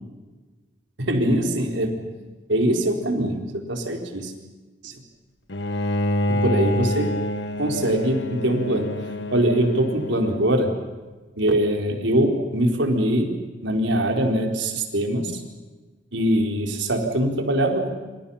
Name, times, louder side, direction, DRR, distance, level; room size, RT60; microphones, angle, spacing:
voice 1, 1.0-2.1 2.5-4.3 4.8-4.9 6.3-7.2 7.6-10.7 11.4-15.4 16.1-17.9, right 1 dB, 90° right, 3 dB, 4.5 m, -23 dB
Bowed string instrument, 5.5-10.7, left 1 dB, 70° left, 1.7 m, -27 dB
27.5 x 26.5 x 5.8 m, 1.3 s
head